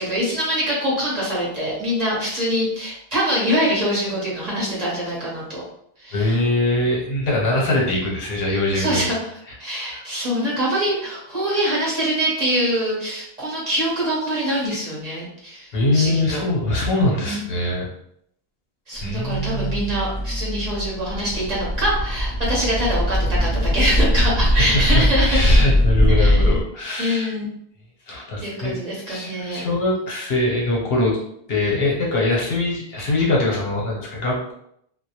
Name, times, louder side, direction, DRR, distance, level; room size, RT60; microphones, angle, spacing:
voice 1, 0.0-5.6 6.0-6.3 7.6-7.7 8.7-9.3 9.6-16.4 17.2-17.4 18.9-25.5 26.1-26.5 27.0-27.5 28.4-29.6, equal, 40° right, -6 dB, 0.9 m, -24 dB
voice 2, 6.1-9.1 9.9-10.0 15.7-17.9 19.0-19.8 24.7-27.3 28.1-28.8 29.1-31.2 31.5-34.5, left 1 dB, 70° left, -3 dB, 0.9 m, -22 dB
sound 1, 19.0-26.6, equal, 45° left, 0.6 m, -20 dB
2.2 x 2.0 x 2.8 m, 0.72 s
omnidirectional pair, 1.1 m